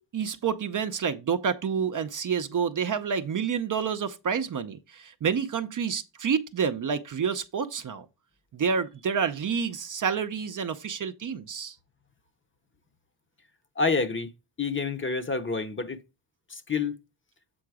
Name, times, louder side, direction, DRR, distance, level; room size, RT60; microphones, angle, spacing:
voice 1, 0.1-8.1 8.5-11.8, right 6 dB, 45° right, 0.6 m, -28 dB
voice 2, 13.8-14.3 14.6-16.0 16.5-16.9, left 4 dB, 25° left, 0.8 m, -28 dB
7.8 x 3.7 x 4.8 m
cardioid pair, 100°, 45 cm